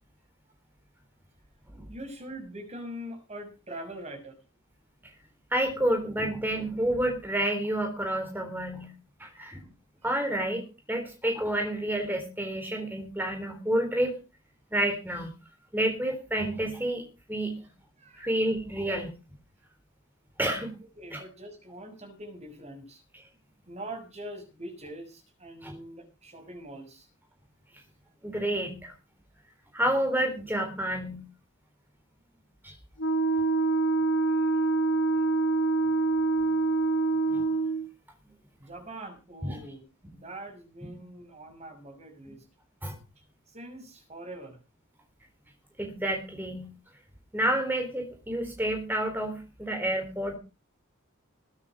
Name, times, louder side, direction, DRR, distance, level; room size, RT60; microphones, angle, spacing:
voice 1, 1.9-4.4 18.0-18.3 21.0-23.0 23.7-27.1 38.6-39.8 40.1-42.4 43.5-44.6, right 1 dB, 30° right, 6 dB, 5.8 m, -43 dB
voice 2, 5.5-8.9 9.2-9.6 10.0-14.2 14.7-15.3 15.7-17.0 17.3-17.6 18.1-19.1 20.4-20.8 21.1-21.2 25.6-25.8 28.2-28.9 29.7-31.2 32.6-32.8 36.4-36.5 37.3-37.5 39.4-39.6 42.8-43.0 45.8-46.7 47.3-50.3, right 1 dB, 10° right, 3 dB, 3.9 m, -29 dB
Wind instrument woodwind instrument, 33.0-37.9, right 3 dB, 65° left, 6.4 m, -25 dB
21.5 x 9.7 x 5.0 m, 0.31 s
head